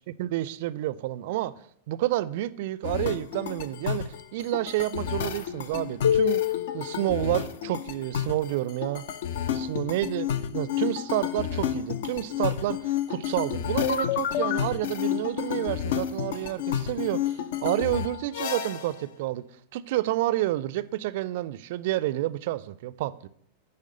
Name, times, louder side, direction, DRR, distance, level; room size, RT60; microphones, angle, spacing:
voice 1, 0.2-1.5 1.9-6.4 6.7-9.1 9.5-19.5 19.7-23.3, right 15 dB, 50° right, 0.4 m, -29 dB
sound 1, 2.8-19.0, left 10 dB, 55° left, 0.5 m, -29 dB
9.9 x 3.5 x 6.5 m
figure-of-eight pair, 90°, 0 cm